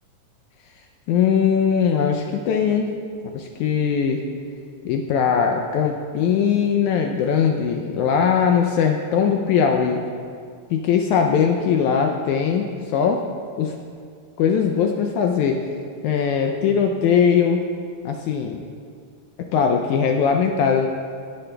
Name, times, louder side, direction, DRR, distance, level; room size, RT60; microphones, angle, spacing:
voice 1, 1.1-2.9 3.3-4.2 4.9-10.0 10.7-12.7 12.9-13.2 13.6-13.8 14.4-15.6 16.0-17.6 18.1-18.6 19.4-20.9, left 7 dB, 80° left, 3 dB, 1.8 m, -20 dB
18.0 x 8.3 x 2.2 m, 2.2 s
omnidirectional pair, 3.8 m